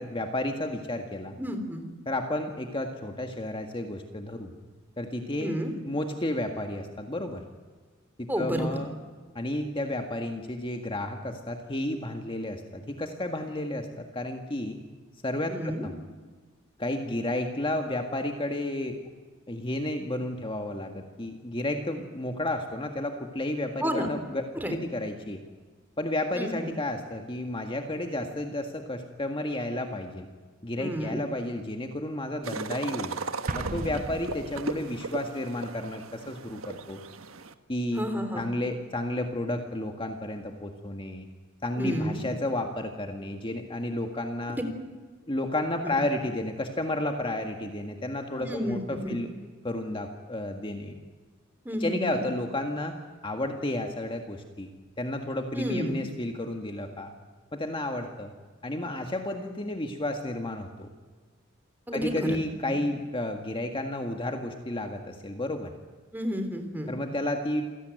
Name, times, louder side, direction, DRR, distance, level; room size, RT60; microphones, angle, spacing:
voice 1, 0.0-1.4 2.1-4.5 5.0-7.4 8.2-8.9 9.4-14.8 15.2-15.9 16.8-19.0 19.5-25.4 26.0-30.3 30.6-33.1 33.5-37.0 37.7-38.0 38.4-41.3 41.6-44.6 45.3-49.3 49.6-51.0 51.8-53.0 53.2-54.7 55.0-57.1 57.5-58.3 58.6-60.9 61.9-65.7 66.9-67.6, left 1 dB, 25° left, 4 dB, 1.8 m, -32 dB
voice 2, 1.4-1.8 5.4-5.7 8.3-8.8 15.5-15.8 23.8-24.1 24.6-24.7 26.3-26.7 30.8-31.2 37.9-38.4 41.8-42.2 44.5-44.6 45.8-46.0 48.4-49.2 51.7-52.2 55.6-56.0 61.9-62.4 62.7-62.8 66.1-66.9, equal, 10° right, 6 dB, 3.6 m, -31 dB
sound 1, 32.4-37.5, right 4 dB, 90° right, 1.4 m, -37 dB
Explosion, 33.5-35.1, right 2 dB, 40° right, 1.0 m, -36 dB
28.0 x 17.5 x 9.3 m, 1.4 s
head